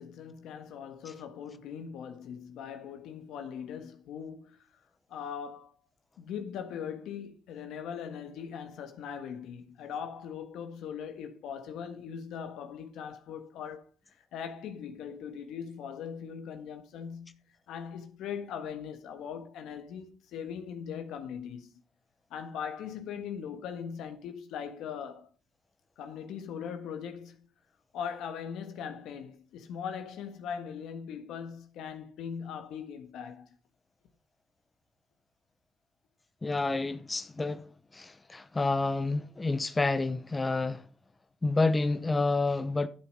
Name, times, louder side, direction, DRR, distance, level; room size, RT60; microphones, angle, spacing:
voice 1, 0.0-4.7 5.1-5.7 6.2-17.4 17.7-21.7 22.3-25.3 26.0-27.5 27.9-33.6, left 7 dB, 80° left, 1.5 m, -40 dB
voice 2, 36.4-40.8 41.4-42.9, left 3 dB, 20° left, 0.8 m, -29 dB
11.5 x 7.0 x 5.4 m
cardioid pair, 115°, 0 cm